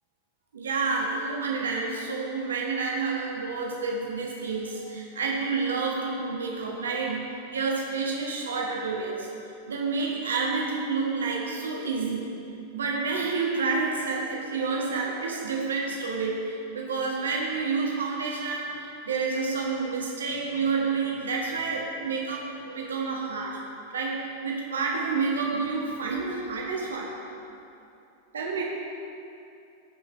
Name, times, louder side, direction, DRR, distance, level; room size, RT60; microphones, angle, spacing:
voice 1, 0.5-9.3 9.7-12.3 12.7-23.7 23.9-27.2 28.3-28.6, right 4 dB, 70° right, -2 dB, 1.4 m, -29 dB
16.0 x 5.6 x 3.2 m, 2.6 s
figure-of-eight pair, 90°, 0 cm